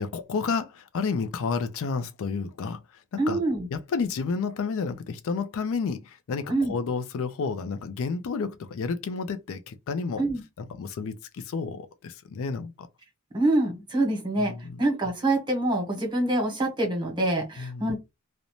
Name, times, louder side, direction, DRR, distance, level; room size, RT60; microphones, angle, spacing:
voice 1, 0.0-3.4 3.7-10.2 10.6-12.9 14.4-14.8 17.6-17.9, left 5 dB, 60° left, 0.4 m, -31 dB
voice 2, 3.2-3.7 6.5-6.7 10.2-10.4 13.3-18.0, right 2 dB, 20° right, 1.0 m, -25 dB
2.6 x 2.1 x 2.9 m
head